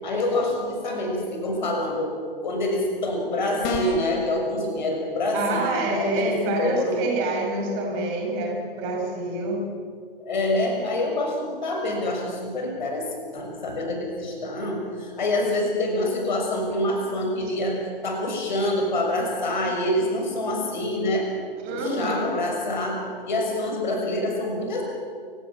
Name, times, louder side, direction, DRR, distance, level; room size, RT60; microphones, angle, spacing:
voice 1, 0.0-2.2 2.4-7.0 10.2-17.8 18.0-21.3 21.7-24.8, left 1 dB, 50° left, 2 dB, 6.6 m, -26 dB
sound 1, 3.6-4.2, left 2 dB, 25° left, 3.1 m, -27 dB
voice 2, 5.3-9.6 21.6-22.3, right 1 dB, 30° right, 1 dB, 6.0 m, -27 dB
28.5 x 18.0 x 7.4 m, 2.1 s
figure-of-eight pair, 120°, 29 cm